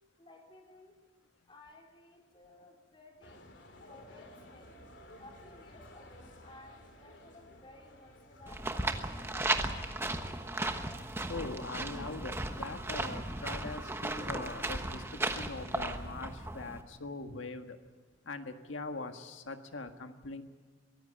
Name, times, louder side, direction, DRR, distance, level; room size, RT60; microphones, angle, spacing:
voice 1, 0.2-1.0 1.4-3.4 3.8-4.7 5.2-10.0, left 2 dB, 25° left, 0 dB, 4.0 m, -56 dB
sound 1, 3.2-8.6, left 1 dB, 70° left, 2.9 m, -54 dB
sound 2, 8.5-16.8, right 2 dB, 10° right, 1.2 m, -36 dB
voice 2, 11.1-17.8 18.2-20.4, left 3 dB, 85° left, 6 dB, 1.6 m, -42 dB
23.0 x 15.5 x 8.8 m, 1.3 s
head